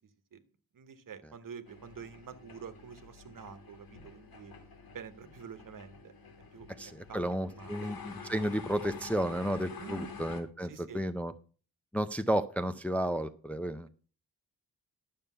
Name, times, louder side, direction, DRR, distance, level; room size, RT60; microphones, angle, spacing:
voice 1, 0.7-4.5 4.9-6.1 6.5-6.7 7.1-7.9 9.8-10.1 10.7-11.0, right 6 dB, 65° right, 11 dB, 1.2 m, -47 dB
sound 1, 1.7-10.4, left 5 dB, 90° left, 2.4 m, -48 dB
voice 2, 6.8-11.3 11.9-13.9, equal, 5° left, 9 dB, 0.4 m, -32 dB
11.5 x 6.8 x 5.5 m, 0.38 s
wide cardioid pair, 170°, 35 cm